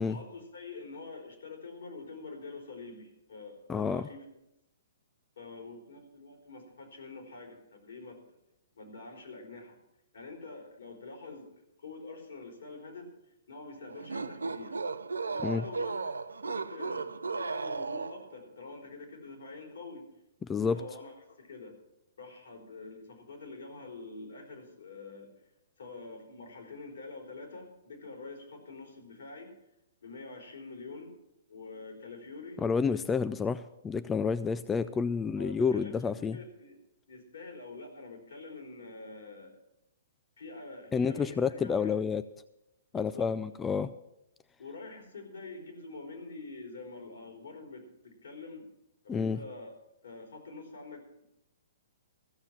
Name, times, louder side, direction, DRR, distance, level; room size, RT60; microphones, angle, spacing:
voice 1, 0.0-4.2 5.4-8.2 8.7-9.8 10.1-11.5 11.8-13.1 13.5-14.8 15.3-16.0 16.4-20.1 20.6-21.8 22.2-25.3 25.8-29.5 30.0-31.1 31.5-32.6 35.2-36.0 36.3-36.8 37.1-39.6 40.4-41.9 42.9-43.3 44.6-48.7 49.0-49.7 50.0-51.2, left 3 dB, 70° left, 1 dB, 4.0 m, -46 dB
voice 2, 3.7-4.1 15.4-15.6 20.5-20.8 32.6-36.4 40.9-42.2 42.9-43.9 49.1-49.4, left 5 dB, 15° left, 13 dB, 0.3 m, -29 dB
sound 1, 13.9-18.4, right 4 dB, 80° right, 0.5 m, -35 dB
14.5 x 7.0 x 7.4 m, 0.87 s
figure-of-eight pair, 120°, 0 cm